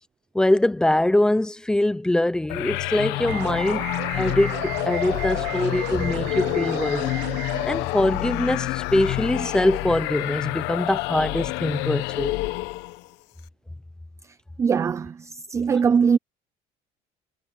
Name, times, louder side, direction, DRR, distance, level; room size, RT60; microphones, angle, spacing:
voice 1, 0.3-7.1 7.6-12.4, left 1 dB, 5° left, 0.7 m, -23 dB
sound 1, 2.5-13.1, left 19 dB, 80° left, 1.0 m, -28 dB
sound 2, 3.3-7.7, right 18 dB, 75° right, 1.0 m, -35 dB
voice 2, 14.6-16.2, right 6 dB, 15° right, 0.3 m, -21 dB
cardioid pair, 180°, 18 cm